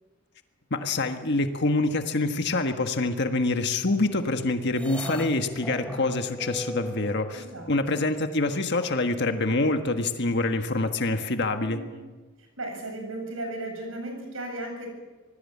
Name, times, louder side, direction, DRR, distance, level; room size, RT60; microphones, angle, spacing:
voice 1, 0.7-11.8, left 2 dB, 50° left, 7 dB, 1.5 m, -26 dB
sound 1, 4.7-7.8, equal, 5° left, 1.0 m, -37 dB
voice 2, 7.3-8.1 11.6-11.9 12.4-14.9, right 1 dB, 65° right, 3 dB, 7.8 m, -36 dB
26.0 x 20.0 x 8.5 m, 1.3 s
head